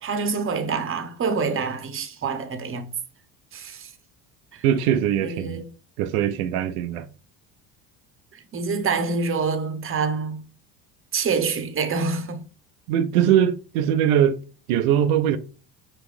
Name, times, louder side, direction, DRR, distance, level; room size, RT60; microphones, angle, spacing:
voice 1, 0.0-2.9 3.5-3.9 4.5-4.6 5.2-5.6 8.3-10.4 11.1-12.4, right 4 dB, 30° right, 0.8 m, -26 dB
voice 2, 4.6-5.6 6.0-7.1 12.9-14.4 14.7-15.4, right 10 dB, 85° right, 0.5 m, -21 dB
5.0 x 3.0 x 3.4 m
supercardioid pair, 80°, 42 cm